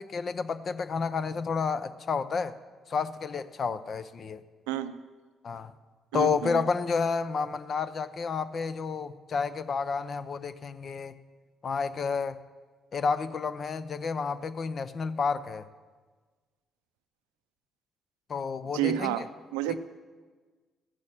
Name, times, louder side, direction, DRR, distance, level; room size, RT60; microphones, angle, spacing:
voice 1, 0.0-2.5 2.9-4.4 5.4-5.7 6.1-11.2 11.6-12.4 12.9-15.6 18.3-19.1 19.7-19.8, left 5 dB, 50° left, 13 dB, 0.7 m, -30 dB
voice 2, 6.1-6.6 18.7-19.2 19.5-19.8, right 12 dB, 90° right, 12 dB, 0.5 m, -29 dB
14.5 x 6.4 x 7.3 m, 1.4 s
hypercardioid pair, 55°, 0 cm